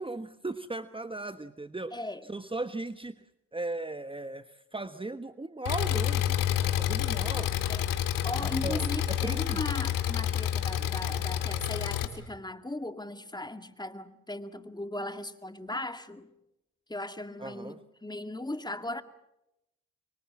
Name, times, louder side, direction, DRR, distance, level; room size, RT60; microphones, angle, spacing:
voice 1, 0.0-3.2 3.5-7.5 8.4-8.8 9.1-9.6 17.4-17.8, right 2 dB, 15° right, 1.3 m, -37 dB
voice 2, 1.9-2.3 7.7-7.8 8.2-16.3 16.9-19.0, left 1 dB, 15° left, 2.1 m, -38 dB
Engine, 5.7-12.1, left 11 dB, 90° left, 2.3 m, -29 dB
25.5 x 23.0 x 7.4 m
supercardioid pair, 55°, 32 cm